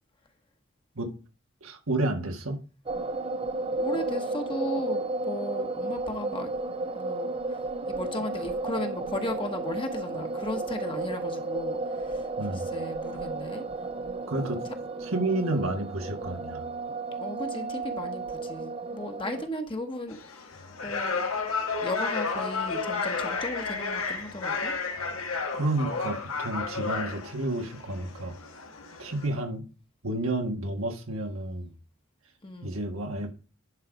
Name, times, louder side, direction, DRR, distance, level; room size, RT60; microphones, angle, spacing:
voice 1, 1.6-2.6 12.4-12.7 14.3-14.6 15.0-16.7 25.5-28.4 29.0-29.6 30.0-31.7 32.6-33.3, right 2 dB, 90° right, 1.6 m, -30 dB
sound 1, 2.9-19.5, right 3 dB, 30° right, 0.6 m, -33 dB
voice 2, 3.8-6.5 6.9-7.3 7.9-13.7 14.4-14.5 15.5-15.7 17.2-20.4 20.8-21.2 21.8-24.7 32.4-32.8, left 1 dB, 25° left, 1.0 m, -36 dB
sound 2, 20.1-29.3, left 4 dB, 90° left, 1.6 m, -32 dB
11.0 x 4.0 x 5.0 m
head